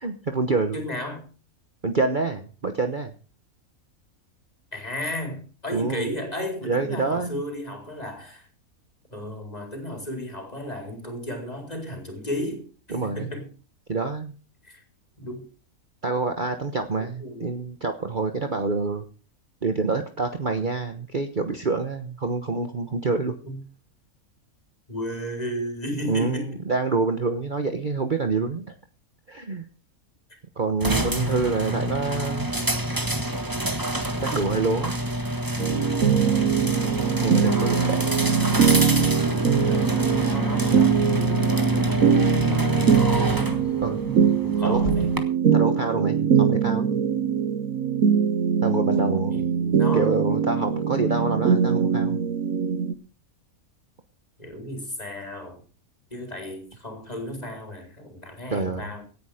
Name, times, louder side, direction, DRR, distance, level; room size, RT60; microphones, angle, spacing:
voice 1, 0.0-0.8 1.8-3.1 5.7-6.1 6.7-7.4 12.9-13.3 13.9-14.3 16.0-19.0 19.6-23.4 26.0-28.7 29.3-29.7 30.6-32.5 34.3-35.0 37.2-38.1 43.8-44.0 44.6-44.8 45.5-47.0 48.6-49.4 49.9-52.2 58.5-58.9, right 3 dB, 35° right, 1.2 m, -26 dB
voice 2, 0.7-1.3 4.7-8.5 9.1-13.5 14.6-14.8 15.2-15.5 17.0-17.6 23.4-23.6 24.9-26.6 30.3-30.4 37.9-38.6 39.6-45.2 49.3-50.1 54.4-55.6 56.1-59.0, left 1 dB, 25° left, 4.4 m, -34 dB
sound 1, 30.8-45.2, right 1 dB, 15° right, 1.5 m, -27 dB
sound 2, 35.6-52.9, right 7 dB, 65° right, 1.3 m, -22 dB
17.5 x 10.0 x 5.0 m
omnidirectional pair, 1.5 m